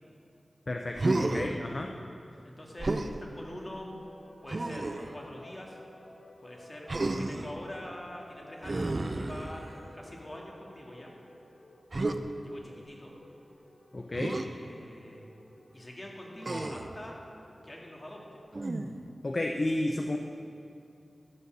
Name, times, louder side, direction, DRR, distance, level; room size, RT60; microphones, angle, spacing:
voice 1, 0.7-1.9 13.9-14.4 19.2-20.2, left 1 dB, 50° left, 2 dB, 0.6 m, -32 dB
Human voice, 0.9-1.6 2.8-3.2 4.5-5.1 6.9-7.5 8.6-9.9 11.9-12.2 14.1-14.5 16.4-17.0 18.5-19.1, right 2 dB, 50° right, 0.6 m, -31 dB
voice 2, 2.4-3.9 4.4-5.8 6.4-9.6 9.9-11.1 12.4-13.1 14.2-15.3 15.7-17.2 17.6-18.2, left 1 dB, 30° left, -2 dB, 2.2 m, -45 dB
sound 1, 4.0-18.4, left 1 dB, 80° left, 1.7 m, -55 dB
14.0 x 5.6 x 6.1 m, 2.7 s
cardioid pair, 45°, 0 cm